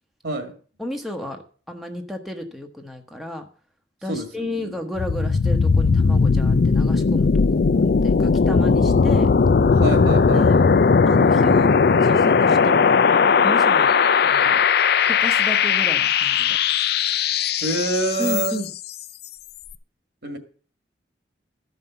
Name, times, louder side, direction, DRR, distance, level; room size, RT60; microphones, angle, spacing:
voice 1, 0.2-0.6 4.1-4.7 9.8-10.7 17.6-18.6 20.2-20.4, right 2 dB, 65° right, 1.9 m, -26 dB
voice 2, 0.8-3.5 4.0-9.3 10.3-10.6 11.1-13.0 13.4-13.9 14.2-14.7 15.1-16.6 18.2-18.7, left 1 dB, ahead, 1.0 m, -33 dB
sound 1, 5.0-18.8, left 5 dB, 60° left, 0.5 m, -18 dB
14.0 x 5.6 x 6.8 m
head